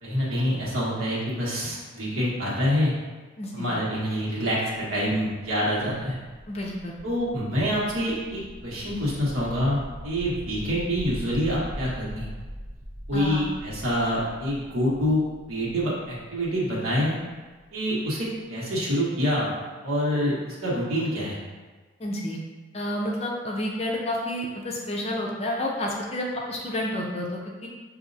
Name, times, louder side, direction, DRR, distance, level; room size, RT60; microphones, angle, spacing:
voice 1, 0.0-2.9 3.5-6.2 7.0-9.8 10.0-12.3 13.1-15.2 15.5-17.2 17.7-19.5 19.8-21.4, equal, 90° right, -6 dB, 1.4 m, -26 dB
voice 2, 3.4-3.7 6.5-7.0 13.1-13.5 22.0-22.4 22.7-27.7, left 1 dB, 30° left, -1 dB, 0.4 m, -30 dB
sound 1, 5.7-17.6, equal, 25° right, 0.5 m, -42 dB
6.1 x 2.7 x 2.6 m, 1.3 s
head